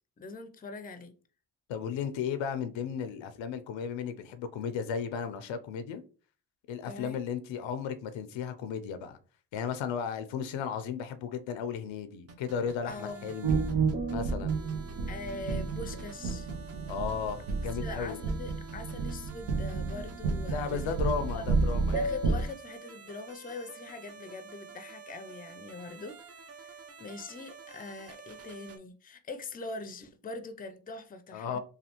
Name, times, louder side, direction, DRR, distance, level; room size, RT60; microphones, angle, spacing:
voice 1, 0.2-1.1 6.8-7.2 12.8-13.3 15.1-16.5 17.7-21.5 21.9-31.6, left 3 dB, 20° left, 0.4 m, -43 dB
voice 2, 1.7-6.0 6.7-9.2 9.5-13.6 14.1-14.6 16.9-18.2 20.4-22.0 31.3-31.6, left 6 dB, 85° left, 0.5 m, -35 dB
sound 1, 12.3-28.8, right 5 dB, 35° right, 0.6 m, -49 dB
sound 2, 13.4-22.4, right 4 dB, 85° right, 0.7 m, -31 dB
3.2 x 2.3 x 2.9 m
supercardioid pair, 55°, 44 cm